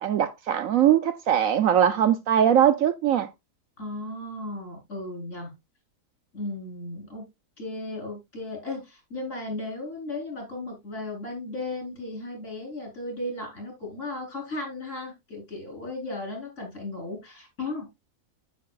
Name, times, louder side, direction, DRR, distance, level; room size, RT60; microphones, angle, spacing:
voice 1, 0.0-3.3, right 9 dB, 70° right, 1.0 m, -21 dB
voice 2, 3.8-5.5 6.3-7.2 7.6-17.9, left 2 dB, 50° left, 4.4 m, -35 dB
9.6 x 8.6 x 2.4 m
omnidirectional pair, 1.6 m